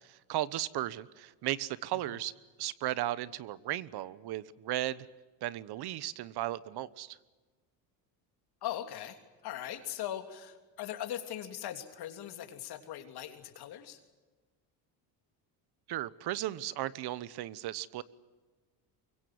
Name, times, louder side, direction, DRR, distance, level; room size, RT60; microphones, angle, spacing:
voice 1, 0.3-2.3 2.6-5.1 5.4-7.2 15.9-18.0, right 14 dB, 65° right, 18 dB, 1.2 m, -35 dB
voice 2, 8.6-14.0, left 11 dB, 65° left, 7 dB, 3.2 m, -40 dB
24.5 x 23.0 x 7.9 m, 1.3 s
cardioid pair, 115°, 41 cm